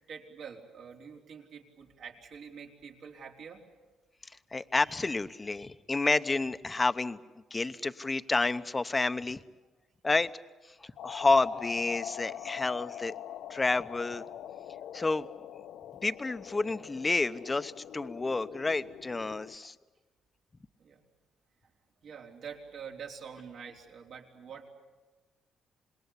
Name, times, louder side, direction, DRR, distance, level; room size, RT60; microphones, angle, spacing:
voice 1, 0.1-3.6 7.6-7.7 20.8-21.0 22.0-24.7, right 6 dB, 70° right, 0 dB, 4.2 m, -46 dB
voice 2, 4.5-7.2 7.5-9.4 10.0-10.3 10.8-13.1 13.5-14.2 14.9-15.3 16.0-19.7, left 3 dB, 25° left, 12 dB, 0.9 m, -29 dB
sound 1, 11.0-19.5, left 11 dB, 80° left, 0.7 m, -43 dB
27.0 x 21.0 x 8.4 m, 1.2 s
cardioid pair, 90°, 0 cm